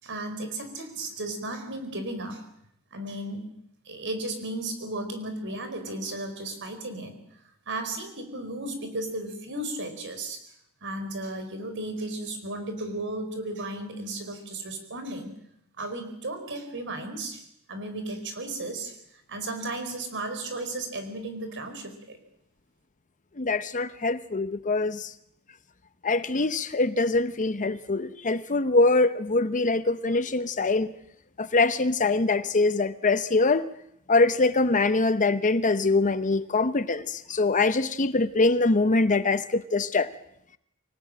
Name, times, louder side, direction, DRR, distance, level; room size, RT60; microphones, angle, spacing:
voice 1, 0.0-2.4 2.9-3.5 3.8-7.2 7.7-10.4 10.8-15.3 15.8-17.4 17.7-19.0 19.3-22.2, right 2 dB, 55° right, 4.7 m, -34 dB
voice 2, 23.4-25.1 26.0-30.9 31.4-33.7 34.1-40.1, left 3 dB, 35° left, 0.8 m, -23 dB
24.5 x 18.5 x 8.9 m
head